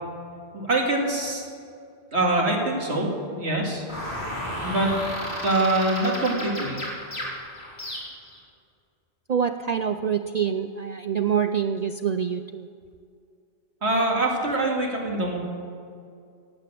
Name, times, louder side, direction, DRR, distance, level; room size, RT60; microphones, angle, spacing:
voice 1, 0.5-1.4 2.1-3.8 4.6-4.9 5.4-6.8 13.8-15.4, right 2 dB, 75° right, -1 dB, 2.7 m, -24 dB
sound 1, 3.9-8.4, equal, 65° left, 4.0 m, -33 dB
voice 2, 9.3-12.7, right 7 dB, 55° right, 9 dB, 0.5 m, -26 dB
17.0 x 8.7 x 7.5 m, 2.4 s
omnidirectional pair, 1.1 m